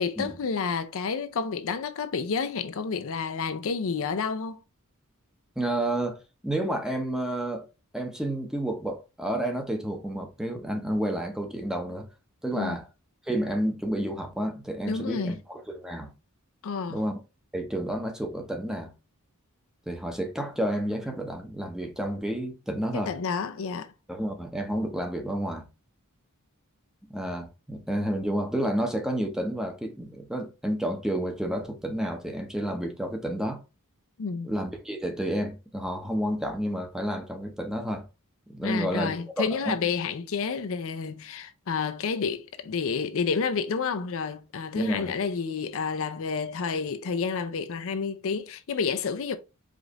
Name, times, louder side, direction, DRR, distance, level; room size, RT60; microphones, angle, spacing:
voice 1, 0.0-4.6 12.5-12.8 14.9-15.4 16.6-17.0 22.9-23.9 34.2-34.5 38.6-49.4, left 5 dB, 65° left, 0.5 m, -30 dB
voice 2, 5.6-6.2 6.4-7.7 7.9-12.1 12.4-12.8 13.3-16.1 16.9-17.1 17.5-18.9 19.9-23.1 24.1-25.7 27.1-33.6 34.4-38.1 38.5-39.1 39.4-39.8 44.8-45.2, right 1 dB, 5° right, 0.7 m, -30 dB
5.0 x 2.5 x 3.9 m
head